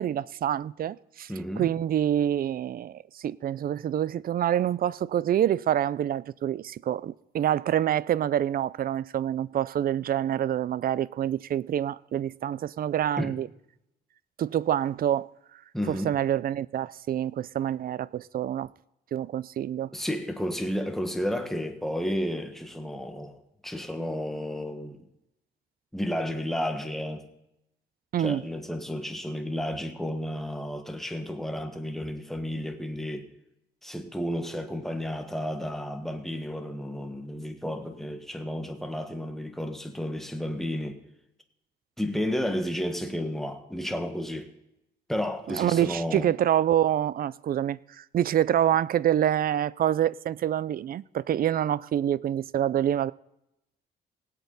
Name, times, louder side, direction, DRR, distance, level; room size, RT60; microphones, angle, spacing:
voice 1, 0.0-1.3 1.6-13.5 14.4-15.3 15.9-18.7 19.1-19.9 28.1-28.4 45.5-53.1, right 11 dB, 50° right, 0.4 m, -26 dB
voice 2, 1.3-1.7 13.2-13.3 15.7-16.1 19.9-23.4 23.6-25.0 25.9-27.2 28.2-33.3 33.8-41.0 42.0-44.5 45.1-46.3, equal, ahead, 1.5 m, -32 dB
18.5 x 8.3 x 4.1 m
cardioid pair, 90°, 20 cm